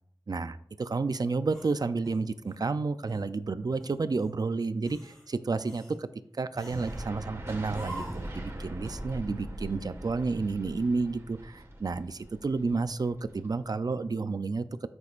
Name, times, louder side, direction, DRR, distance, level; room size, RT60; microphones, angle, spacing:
voice 1, 0.3-6.1 6.4-14.6, right 4 dB, 55° right, 12 dB, 0.5 m, -31 dB
sound 1, 1.5-2.6 3.1-3.3 3.8-4.3 4.8-5.3 5.6-6.0 6.5-7.0 7.7-8.3, right 1 dB, 5° left, 3.3 m, -45 dB
sound 2, 6.7-13.7, right 1 dB, 35° right, 1.7 m, -41 dB
13.5 x 6.2 x 2.5 m, 0.66 s
wide cardioid pair, 80°, 8 cm